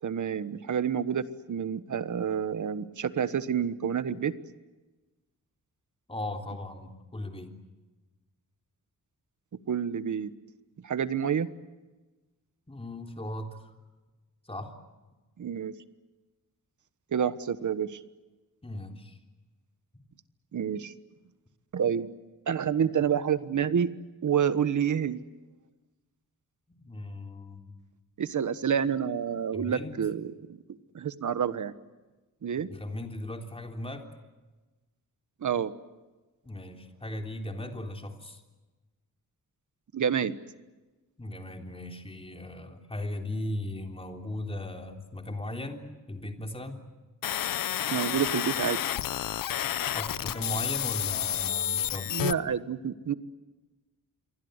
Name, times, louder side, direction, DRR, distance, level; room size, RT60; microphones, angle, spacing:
voice 1, 0.0-4.3 9.7-10.3 10.8-11.5 15.4-15.7 17.1-18.0 20.5-20.9 21.7-22.1 22.5-23.9 24.2-25.2 28.2-31.7 32.4-32.7 35.4-35.7 39.9-40.4 47.9-48.8 52.1-53.1, right 8 dB, 65° right, 13 dB, 1.3 m, -28 dB
voice 2, 6.1-7.5 12.7-13.7 14.5-14.8 18.6-19.2 19.9-20.0 26.7-27.8 29.5-29.9 32.7-34.1 36.4-38.4 41.2-46.8 49.9-52.2, left 1 dB, 15° left, 3 dB, 3.5 m, -37 dB
sound 1, 47.2-52.3, left 11 dB, 90° left, 0.8 m, -30 dB
27.5 x 23.5 x 8.1 m, 1.2 s
wide cardioid pair, 110°, 33 cm